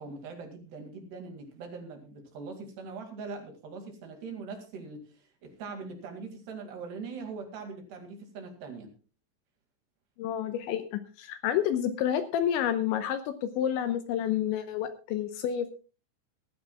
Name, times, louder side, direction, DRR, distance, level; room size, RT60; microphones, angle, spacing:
voice 1, 0.0-8.9, right 4 dB, 60° right, 4 dB, 4.0 m, -42 dB
voice 2, 10.2-15.7, left 10 dB, 80° left, 9 dB, 2.9 m, -29 dB
20.0 x 13.5 x 2.3 m, 0.34 s
omnidirectional pair, 5.8 m